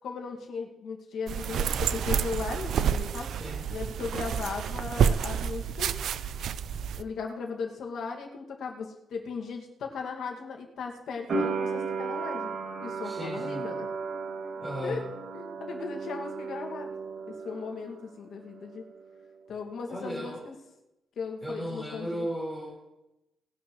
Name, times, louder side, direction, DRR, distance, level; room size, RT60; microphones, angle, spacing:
voice 1, 0.0-3.3 3.7-5.9 7.0-12.5 12.8-13.9 14.8-15.0 15.3-16.9 17.3-18.9 19.5-20.5 21.2-22.3, left 5 dB, 65° left, 2 dB, 2.0 m, -37 dB
sound 1, 1.3-7.0, right 8 dB, 75° right, 0.5 m, -29 dB
voice 2, 3.4-3.7 13.0-13.7 14.6-15.0 19.9-20.4 21.4-22.8, equal, 10° right, -6 dB, 4.3 m, -35 dB
sound 2, 11.3-18.1 18.4-19.2, right 4 dB, 55° right, 2.1 m, -35 dB
19.5 x 11.0 x 3.1 m, 0.94 s
wide cardioid pair, 160°, 0 cm